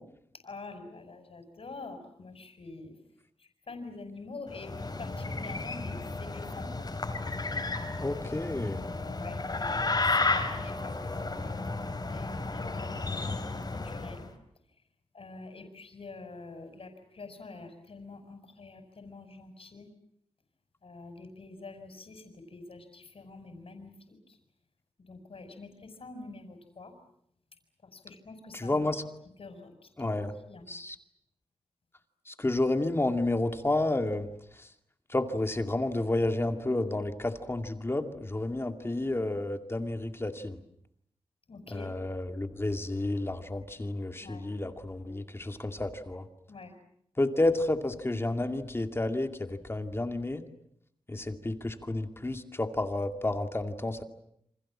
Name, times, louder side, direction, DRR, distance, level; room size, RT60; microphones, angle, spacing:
voice 1, 0.4-2.9 3.7-6.7 8.8-9.8 10.2-11.6 12.1-14.2 15.1-19.9 20.8-24.4 25.1-26.9 27.9-28.8 29.4-29.7 30.0-30.7 41.5-41.9 44.2-44.5 46.5-46.7, left 3 dB, 60° left, 4 dB, 5.7 m, -46 dB
sound 1, 4.5-14.3, left 3 dB, 40° left, 3.9 m, -33 dB
voice 2, 8.0-8.8 28.5-29.0 30.0-30.3 30.7-31.0 32.3-34.3 35.1-40.6 41.7-46.2 47.2-50.4 51.1-54.0, left 2 dB, 20° left, 6 dB, 2.3 m, -30 dB
29.0 x 26.5 x 7.4 m, 0.72 s
wide cardioid pair, 135°, 11 cm